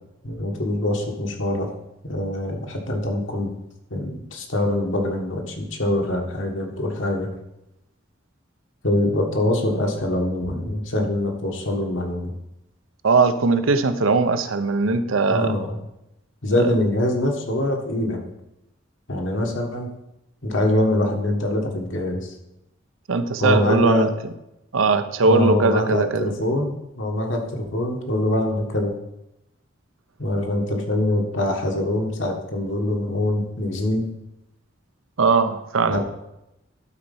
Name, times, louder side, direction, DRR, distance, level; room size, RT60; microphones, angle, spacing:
voice 1, 0.2-1.7 2.0-3.5 3.9-7.3 8.8-12.3 15.3-15.8 16.4-18.2 19.1-19.9 20.4-22.3 23.4-24.1 25.2-28.9 30.2-34.0 35.9-36.0, left 1 dB, 75° left, 2 dB, 1.6 m, -24 dB
voice 2, 13.0-15.5 16.6-16.7 23.1-24.1 24.7-26.3 35.2-36.0, right 4 dB, 90° right, 10 dB, 0.7 m, -20 dB
11.5 x 4.2 x 5.5 m, 0.87 s
head